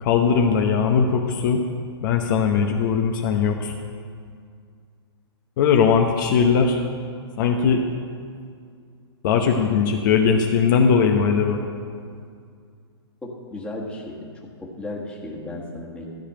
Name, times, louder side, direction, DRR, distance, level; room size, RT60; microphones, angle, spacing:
voice 1, 0.0-1.6 2.0-3.7 5.6-6.8 7.4-7.8 9.2-11.7, left 6 dB, 45° left, 3 dB, 0.9 m, -19 dB
voice 2, 13.2-14.3 14.6-16.1, left 2 dB, 10° left, -2 dB, 1.6 m, -34 dB
13.5 x 5.0 x 8.8 m, 2.2 s
hypercardioid pair, 135°, 14 cm